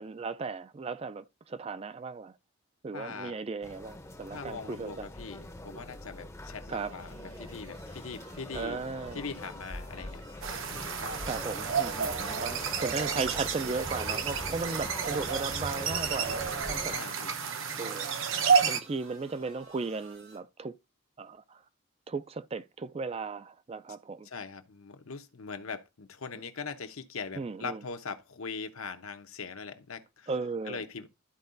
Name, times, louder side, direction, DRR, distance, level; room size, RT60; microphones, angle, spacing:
voice 1, 0.0-2.3 2.8-5.1 6.7-6.9 8.5-9.2 11.2-16.9 17.8-18.1 18.6-20.8 21.2-21.6 22.1-24.3 27.4-27.8 30.3-30.8, right 4 dB, 30° right, 0.3 m, -36 dB
voice 2, 2.9-3.4 4.3-8.8 9.1-10.2 16.9-17.4 24.2-30.3 30.7-31.1, left 5 dB, 75° left, 0.9 m, -41 dB
sound 1, 3.6-17.0, left 1 dB, 15° left, 0.6 m, -43 dB
sound 2, 6.8-20.4, right 3 dB, 80° right, 5.1 m, -55 dB
sound 3, 10.4-18.8, right 6 dB, 65° right, 0.8 m, -30 dB
12.5 x 4.7 x 2.6 m
head